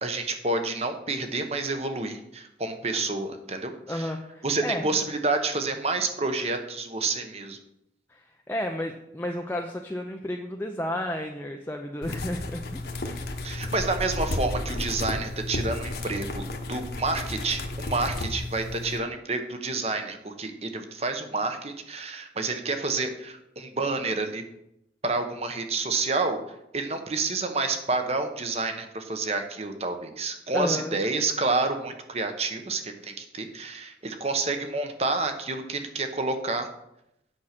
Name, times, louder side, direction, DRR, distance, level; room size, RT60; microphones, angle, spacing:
voice 1, 0.0-4.1 4.4-7.6 13.4-24.4 25.0-26.4 26.7-36.7, right 3 dB, 35° right, 6 dB, 1.0 m, -29 dB
voice 2, 3.9-4.9 8.1-12.8 30.5-31.0, left 1 dB, 10° left, 2 dB, 0.5 m, -32 dB
sound 1, 12.0-19.0, left 2 dB, 60° left, 1.1 m, -33 dB
8.7 x 6.3 x 5.9 m, 0.82 s
head